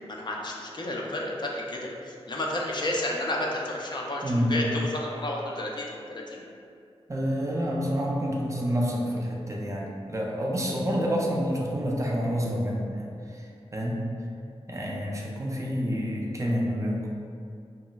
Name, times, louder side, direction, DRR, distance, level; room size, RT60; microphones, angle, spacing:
voice 1, 0.1-5.9 6.1-6.4, left 1 dB, 45° left, -2 dB, 0.4 m, -31 dB
voice 2, 4.2-4.5 7.1-13.5 13.7-14.0 14.7-17.1, equal, 30° right, -2 dB, 0.4 m, -28 dB
2.3 x 2.1 x 3.9 m, 2.3 s
wide cardioid pair, 75°, 11 cm